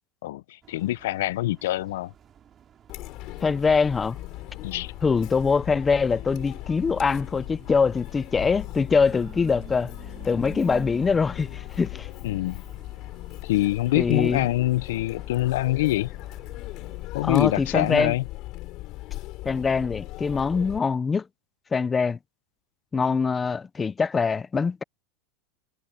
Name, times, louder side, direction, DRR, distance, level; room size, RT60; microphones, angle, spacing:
voice 1, 0.2-2.1 4.6-4.9 12.2-12.6 13.4-16.1 17.1-18.2, left 16 dB, 80° left, 0.5 m, -25 dB
sound 1, 0.6-17.1, right 9 dB, 25° right, 4.2 m, -50 dB
Chatter, 2.9-20.8, left 18 dB, 40° left, 3.7 m, -38 dB
voice 2, 3.4-4.2 5.0-9.9 10.2-12.1 13.9-14.5 17.2-18.1 19.4-21.2 21.7-22.2 22.9-24.8, left 5 dB, 15° left, 0.5 m, -23 dB
supercardioid pair, 170°, 0 cm